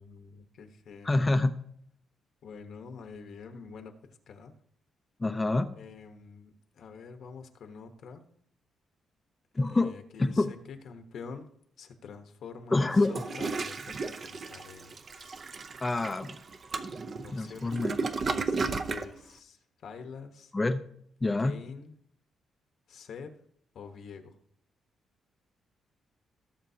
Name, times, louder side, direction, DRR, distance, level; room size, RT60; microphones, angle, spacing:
voice 1, 0.0-1.4 2.4-4.5 5.8-8.2 9.7-11.5 11.8-15.4 17.2-17.8 18.3-20.5 21.4-21.9 22.9-23.3 23.7-24.3, left 5 dB, 60° left, 7 dB, 1.1 m, -46 dB
voice 2, 1.0-1.5 5.2-5.7 9.5-10.5 12.7-13.1 15.8-16.4 17.3-18.0 20.5-20.8 21.2-21.5, left 2 dB, 15° left, 10 dB, 0.6 m, -27 dB
Toilet flush, 12.9-19.1, right 4 dB, 35° right, 0.7 m, -34 dB
17.0 x 7.4 x 2.8 m, 0.68 s
cardioid pair, 145°, 0 cm